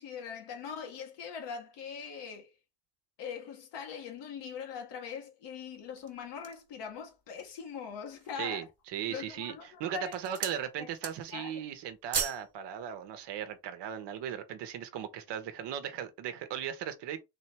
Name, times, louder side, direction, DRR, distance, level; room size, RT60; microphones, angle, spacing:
voice 1, 0.0-2.5 3.2-8.6 9.1-10.2 10.8-10.9 11.3-11.7, left 7 dB, 70° left, 1.5 m, -42 dB
sound 1, 5.7-6.7 7.3-7.4 7.9-8.5 9.2-9.5 9.9-10.6 10.9-11.4 11.7-12.5 12.8-13.0, right 6 dB, 35° right, 1.2 m, -37 dB
voice 2, 8.3-17.2, right 9 dB, 70° right, 1.0 m, -37 dB
3.9 x 2.8 x 3.3 m
cardioid pair, 95°, 44 cm